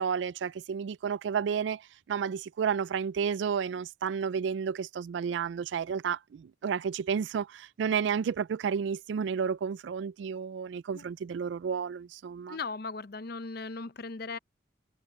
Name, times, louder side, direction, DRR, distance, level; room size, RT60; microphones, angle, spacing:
voice 1, 0.0-1.8 2.1-12.6, right 7 dB, 70° right, 0.3 m, -31 dB
voice 2, 12.5-14.4, left 4 dB, 55° left, 0.6 m, -38 dB
head